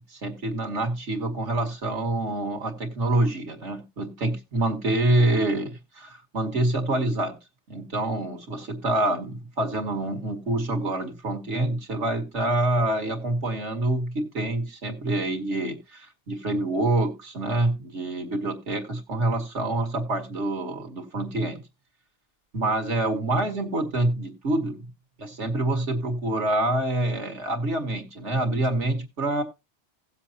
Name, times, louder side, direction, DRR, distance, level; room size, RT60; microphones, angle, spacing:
voice 1, 0.1-7.4 7.7-21.6 22.5-24.8 25.2-29.4, right 2 dB, 85° right, 2.3 m, -26 dB
17.0 x 7.4 x 2.8 m
omnidirectional pair, 1.2 m